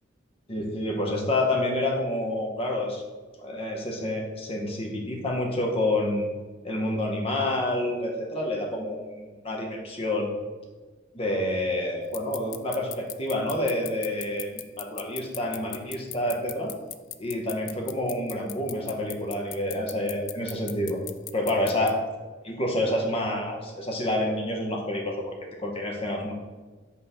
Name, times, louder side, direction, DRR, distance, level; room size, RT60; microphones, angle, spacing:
voice 1, 0.5-3.0 3.4-6.2 6.6-10.3 11.1-16.7 17.2-21.0 21.3-21.9 22.4-25.3 25.6-26.3, left 1 dB, 30° left, 0 dB, 1.0 m, -28 dB
sound 1, 12.1-21.9, left 15 dB, 70° left, 0.3 m, -36 dB
5.6 x 3.3 x 5.4 m, 1.3 s
head